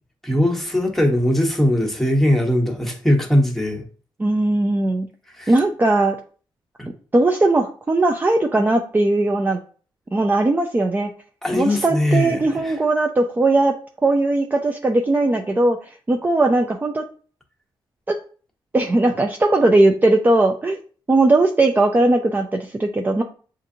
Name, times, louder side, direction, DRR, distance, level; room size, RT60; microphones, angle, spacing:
voice 1, 0.2-3.8 5.4-5.5 6.8-6.9 11.4-12.8, left 1 dB, 5° left, 1.1 m, -20 dB
voice 2, 4.2-5.1 5.5-6.2 7.1-9.6 10.1-11.1 11.5-13.7 14.0-17.0 18.1-18.2 18.7-20.8 21.1-23.2, right 2 dB, 20° right, 0.5 m, -18 dB
6.5 x 2.5 x 2.7 m
cardioid pair, 85°, 9 cm